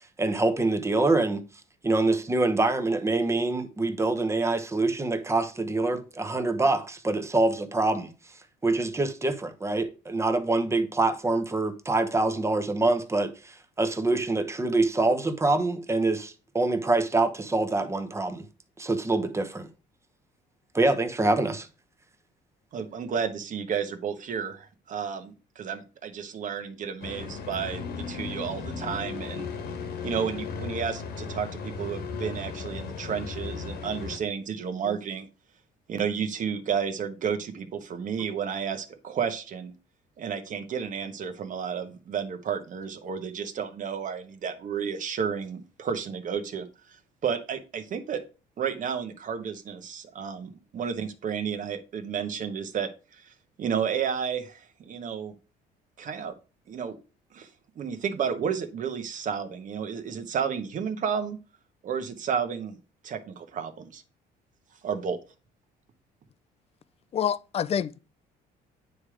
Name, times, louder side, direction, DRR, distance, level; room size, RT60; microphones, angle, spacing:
voice 1, 0.0-1.4 1.8-8.1 8.6-18.5 18.8-19.7 20.7-21.7 34.9-35.0, right 2 dB, 15° right, 1.0 m, -25 dB
voice 2, 22.7-29.5 30.0-35.3 35.9-39.7 40.2-47.0 47.2-48.2 48.6-53.3 53.6-55.3 56.0-56.3 56.7-57.0 57.3-57.5 57.8-61.4 61.8-62.8 63.0-64.0 64.8-65.2, right 7 dB, 50° right, 1.2 m, -32 dB
sound 1, 27.0-34.2, left 5 dB, 70° left, 1.4 m, -36 dB
voice 3, 67.1-68.0, left 9 dB, 35° left, 0.5 m, -27 dB
9.4 x 3.4 x 4.9 m
cardioid pair, 110°, 17 cm